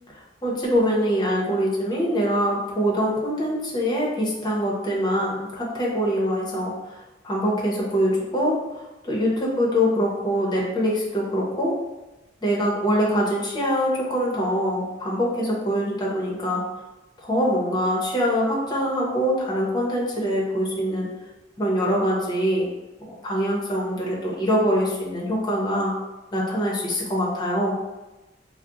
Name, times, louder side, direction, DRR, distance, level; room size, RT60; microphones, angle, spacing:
voice 1, 0.4-7.0 7.2-8.6 9.0-11.7 12.4-16.6 17.2-21.1 21.6-22.7 23.0-25.9 26.3-27.7, equal, 25° left, -4 dB, 0.7 m, -24 dB
2.4 x 2.0 x 3.8 m, 1.1 s
head